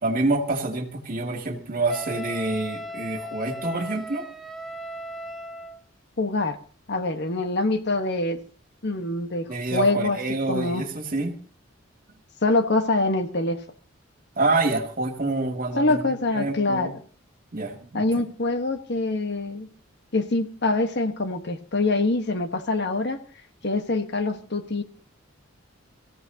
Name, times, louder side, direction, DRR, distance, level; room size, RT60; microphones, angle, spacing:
voice 1, 0.0-4.2 9.5-11.4 14.4-16.0 16.3-16.9 17.5-18.0, right 2 dB, 45° right, 4 dB, 2.4 m, -27 dB
Wind instrument woodwind instrument, 1.9-5.8, equal, ahead, 1.4 m, -37 dB
voice 2, 6.2-6.6 6.9-8.4 8.8-10.2 10.5-10.9 12.4-13.6 15.8-16.9 17.9-19.7 20.1-23.2 23.6-24.8, left 2 dB, 55° left, 7 dB, 1.3 m, -25 dB
24.0 x 15.0 x 2.8 m, 0.39 s
head